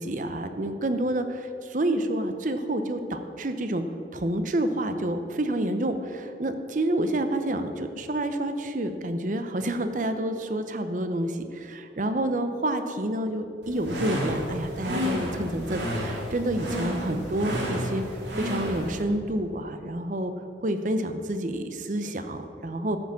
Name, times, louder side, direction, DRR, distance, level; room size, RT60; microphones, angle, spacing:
voice 1, 0.0-3.8 4.1-18.0 18.4-20.3 20.6-23.0, right 1 dB, 45° right, 8 dB, 0.8 m, -28 dB
sound 1, 13.6-19.0, equal, 85° right, 2.4 m, -31 dB
13.0 x 6.0 x 7.6 m, 2.8 s
head